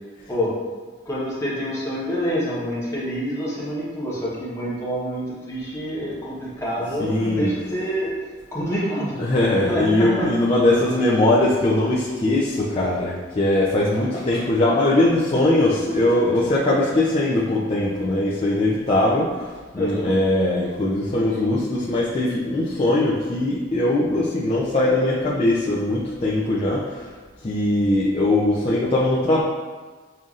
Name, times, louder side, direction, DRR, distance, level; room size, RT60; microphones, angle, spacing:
voice 1, 1.0-8.1 8.5-9.2 9.6-10.3 19.7-20.1, equal, 15° left, -8 dB, 1.0 m, -27 dB
voice 2, 7.0-7.5 9.2-27.1 27.4-29.4, left 1 dB, 30° left, -7 dB, 0.4 m, -21 dB
5.5 x 2.6 x 2.4 m, 1.4 s
head